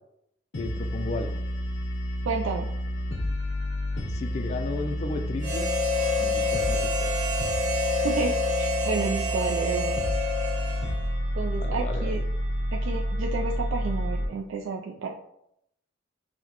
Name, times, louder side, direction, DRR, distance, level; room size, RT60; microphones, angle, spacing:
sound 1, 0.5-14.3, equal, 90° left, 0.7 m, -30 dB
voice 1, 0.6-1.4 4.1-5.7 6.2-7.1 11.6-12.2, left 2 dB, 35° left, 7 dB, 0.3 m, -34 dB
voice 2, 2.2-2.7 8.0-9.9 11.3-12.2 12.7-15.2, right 4 dB, 85° right, 0 dB, 0.3 m, -31 dB
Harmonica, 5.4-11.2, left 2 dB, 40° right, 1.0 m, -28 dB
5.7 x 2.1 x 2.9 m, 0.78 s
head